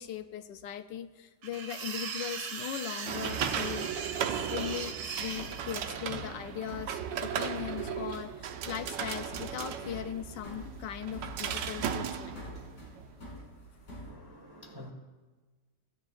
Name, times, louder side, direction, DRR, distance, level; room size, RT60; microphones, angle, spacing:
voice 1, 0.0-4.1 4.5-12.4, left 10 dB, 75° left, 10 dB, 1.2 m, -39 dB
sound 1, 1.4-5.7, right 6 dB, 65° right, 1.4 m, -39 dB
sound 2, 3.1-13.1, right 8 dB, 80° right, 1.3 m, -36 dB
sound 3, 5.3-14.1, left 1 dB, 60° left, 3.1 m, -47 dB
voice 2, 14.0-14.9, left 1 dB, 15° right, 2 dB, 1.0 m, -48 dB
16.5 x 10.0 x 2.4 m, 1.3 s
omnidirectional pair, 2.0 m